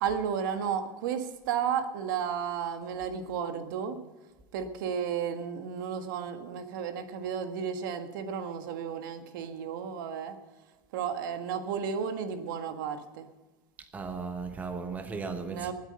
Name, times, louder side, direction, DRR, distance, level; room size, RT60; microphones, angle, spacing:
voice 1, 0.0-4.0 4.5-10.3 10.9-13.3 15.5-15.7, right 7 dB, 70° right, 1.7 m, -33 dB
voice 2, 13.9-15.7, right 4 dB, 15° right, 1.1 m, -36 dB
19.5 x 8.3 x 5.4 m
supercardioid pair, 145°, 11 cm